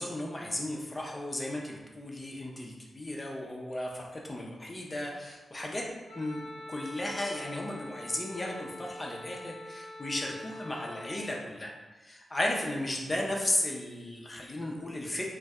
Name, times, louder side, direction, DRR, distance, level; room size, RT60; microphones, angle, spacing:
voice 1, 0.0-5.9 6.1-15.3, left 1 dB, 20° left, -1 dB, 0.4 m, -35 dB
Wind instrument woodwind instrument, 6.1-11.2, left 1 dB, 80° right, 0.7 m, -45 dB
2.6 x 2.1 x 3.5 m, 1.1 s
wide cardioid pair, 170°, 0 cm